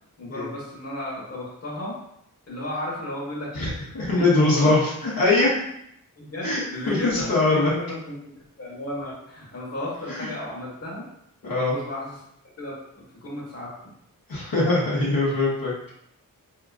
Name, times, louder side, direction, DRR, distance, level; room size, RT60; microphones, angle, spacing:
voice 1, 0.2-2.0 2.5-3.8 4.1-4.7 6.2-8.2 8.6-11.0 11.4-12.2 12.6-13.9, left 1 dB, 45° left, -5 dB, 1.3 m, -34 dB
voice 2, 3.9-5.5 6.4-6.6 6.9-7.7 10.1-10.3 11.4-11.7 14.3-15.7, left 2 dB, 80° left, -8 dB, 1.1 m, -22 dB
3.6 x 2.9 x 2.4 m, 0.76 s
wide cardioid pair, 60°, 35 cm